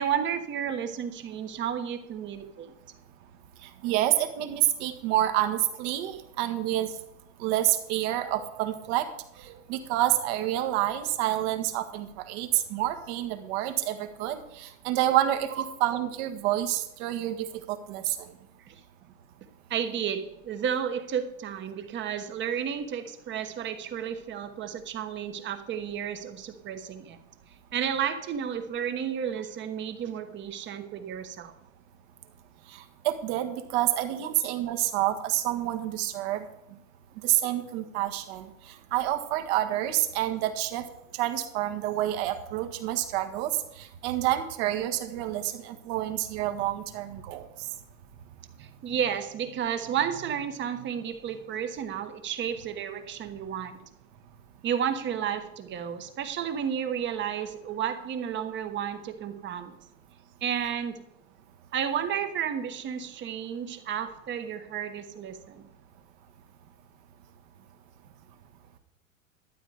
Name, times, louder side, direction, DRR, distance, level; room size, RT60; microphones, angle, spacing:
voice 1, 0.0-2.7 18.7-18.8 19.7-27.2 27.7-31.5 48.6-53.8 54.6-59.7 60.4-61.0 61.7-65.7, right 8 dB, 30° right, 8 dB, 1.3 m, -32 dB
voice 2, 3.8-6.9 7.4-9.1 9.4-15.5 15.8-18.2 32.7-36.4 37.2-38.5 38.9-40.8 41.2-43.5 43.8-47.5, right 13 dB, 55° right, 7 dB, 1.7 m, -28 dB
12.0 x 9.1 x 5.0 m, 0.85 s
hypercardioid pair, 125°, 40 cm